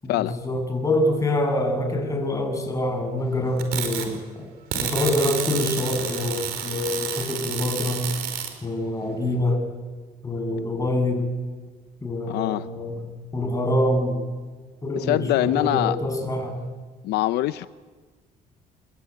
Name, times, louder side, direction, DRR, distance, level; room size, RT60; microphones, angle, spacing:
voice 1, 0.0-4.5 4.8-8.1 8.6-9.6 10.2-11.3 12.0-14.2 14.8-16.6, left 1 dB, 20° left, 7.3 m, -25 dB
sound 1, 3.6-4.1 4.7-8.5, right 9 dB, 80° right, 4.9 m, -30 dB
voice 2, 12.3-12.7 14.9-16.0 17.0-17.7, left 15 dB, 80° left, 0.7 m, -23 dB
27.0 x 21.0 x 9.6 m
cardioid pair, 110°, 17 cm